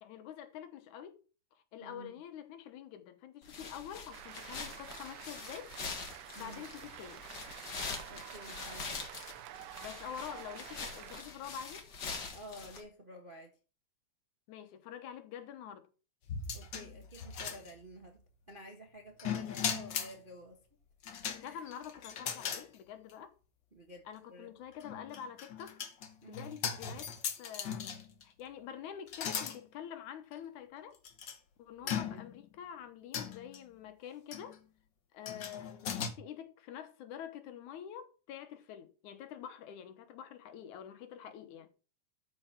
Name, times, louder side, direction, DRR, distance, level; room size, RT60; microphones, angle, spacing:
voice 1, 0.0-1.2 1.5-5.7 6.4-7.2 9.8-11.8 14.5-15.9 21.4-23.3 24.1-25.8 26.3-27.1 27.4-31.0 31.6-34.6 35.1-41.7, left 9 dB, 75° left, 2.5 m, -47 dB
voice 2, 1.8-2.1 6.4-6.6 8.1-8.9 12.3-13.6 16.5-20.6 21.4-21.6 23.7-24.5 26.2-26.4 31.8-32.2, equal, 35° right, 0.7 m, -51 dB
sound 1, 3.4-12.8, left 4 dB, 40° left, 1.9 m, -44 dB
Cheering / Applause, 4.1-11.2, right 13 dB, 80° right, 1.4 m, -49 dB
safe deposit box lock +chain, 16.3-18.1 19.2-20.2 21.0-22.7 23.1-23.2 24.7-28.2 29.1-29.6 30.3-30.4 31.0-31.4 31.9-32.4 33.1-33.6 34.3-34.6 35.3-36.1, left 7 dB, 55° left, 1.2 m, -38 dB
13.0 x 4.6 x 5.8 m
omnidirectional pair, 3.5 m